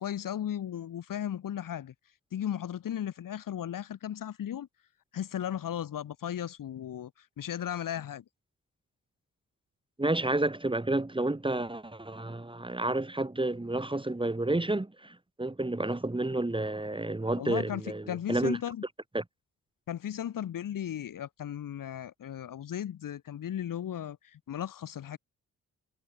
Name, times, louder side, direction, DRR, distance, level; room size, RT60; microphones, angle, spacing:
voice 1, 0.0-1.9 2.3-4.7 5.1-8.2 17.4-18.8 19.9-25.2, left 10 dB, 75° left, 4.9 m, -36 dB
voice 2, 10.0-18.6 19.1-19.2, right 2 dB, 15° right, 2.6 m, -30 dB
cardioid pair, 65°, 33 cm